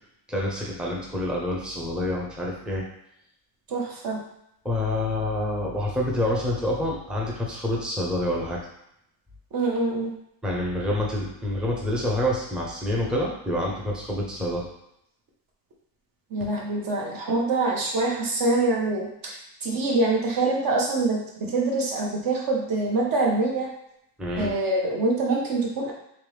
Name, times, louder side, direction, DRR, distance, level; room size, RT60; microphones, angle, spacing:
voice 1, 0.3-2.8 4.6-8.6 10.4-14.7 24.2-24.5, left 1 dB, ahead, -4 dB, 0.7 m, -27 dB
voice 2, 3.7-4.2 9.5-10.1 16.3-23.7 24.3-25.9, right 2 dB, 45° right, -1 dB, 1.1 m, -25 dB
3.4 x 3.1 x 3.2 m, 0.78 s
cardioid pair, 125°, 48 cm